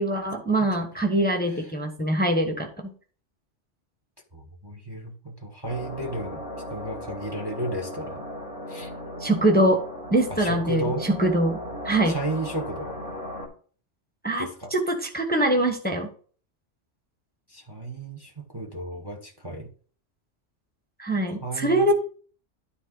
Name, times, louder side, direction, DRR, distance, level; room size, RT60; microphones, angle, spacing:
voice 1, 0.0-2.9 9.2-9.8 10.1-11.6 11.8-12.2 14.2-14.5 14.7-16.1 21.0-21.9, right 1 dB, 10° left, 2 dB, 1.0 m, -23 dB
voice 2, 4.3-6.4 6.7-8.2 8.7-8.9 10.3-11.1 12.1-13.0 14.4-14.7 17.5-19.7 21.4-21.9, right 1 dB, 20° right, 3 dB, 1.1 m, -33 dB
sound 1, 5.6-13.5, equal, 35° right, 3.3 m, -37 dB
12.0 x 4.2 x 3.8 m, 0.43 s
omnidirectional pair, 1.2 m